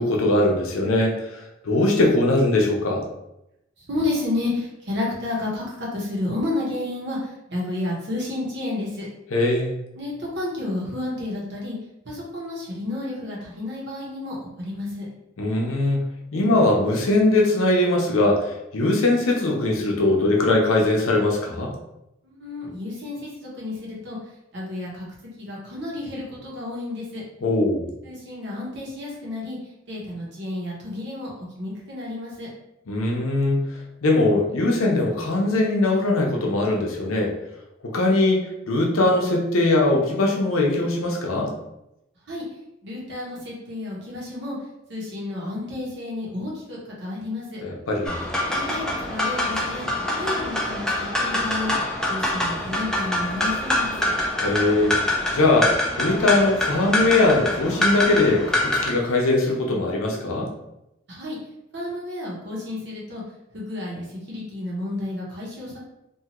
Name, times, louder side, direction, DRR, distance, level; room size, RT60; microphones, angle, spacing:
voice 1, 0.0-1.4 1.6-3.0 9.3-9.7 15.4-16.0 16.3-21.7 27.4-27.9 32.9-33.6 34.0-37.3 37.9-41.5 47.6-48.2 54.4-54.9 55.3-60.5, left 2 dB, 85° left, 0 dB, 0.6 m, -21 dB
voice 2, 3.8-9.1 9.9-11.8 12.0-15.0 22.2-24.2 24.5-25.1 25.4-27.2 28.0-29.6 29.9-32.5 42.3-42.4 42.8-44.6 44.9-47.6 48.5-49.9 50.1-51.7 52.1-54.1 61.1-61.4 61.7-63.2 63.5-65.8, left 2 dB, 55° right, -5 dB, 0.9 m, -31 dB
sound 1, 48.1-58.9, left 1 dB, 5° left, 0.3 m, -25 dB
2.7 x 2.4 x 2.9 m, 0.87 s
head